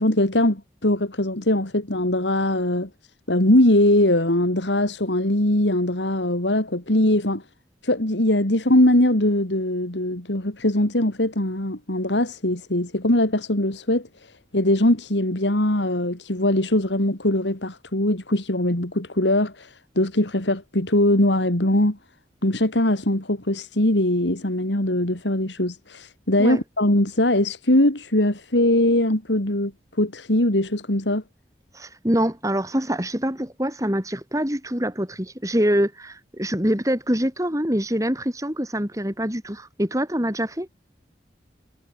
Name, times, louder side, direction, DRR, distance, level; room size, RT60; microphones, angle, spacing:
voice 1, 0.0-2.9 3.3-7.4 7.8-14.1 14.5-22.0 22.4-29.7 30.0-31.2, left 1 dB, 90° left, 3.7 m, -21 dB
voice 2, 31.7-40.7, equal, 20° right, 4.8 m, -25 dB
head